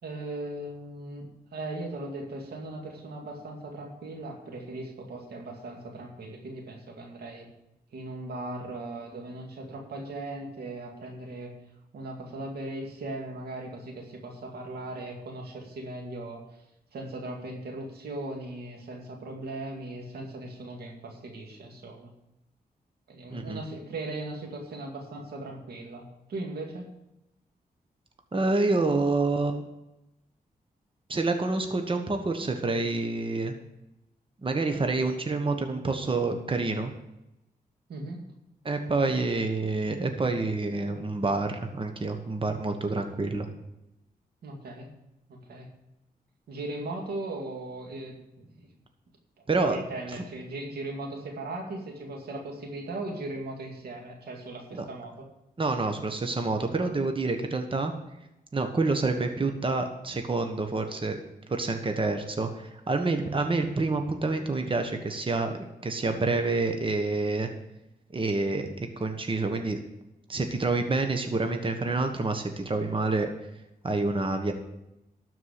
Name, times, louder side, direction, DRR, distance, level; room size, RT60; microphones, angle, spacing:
voice 1, 0.0-1.3 1.5-7.5 7.9-11.5 11.9-16.6 16.9-22.1 23.1-26.9 37.9-38.2 44.4-44.9 45.3-45.7 46.5-48.7 49.7-55.3, right 2 dB, 85° right, 1 dB, 2.2 m, -38 dB
voice 2, 28.3-29.6 31.1-33.5 34.4-36.9 38.6-43.5 49.5-49.8 54.7-54.8 55.6-57.9 58.5-61.2 61.5-67.5 68.1-69.8 70.3-73.3 73.8-74.5, right 3 dB, 35° right, 5 dB, 1.3 m, -28 dB
12.5 x 4.7 x 8.2 m, 0.91 s
cardioid pair, 70°, 16 cm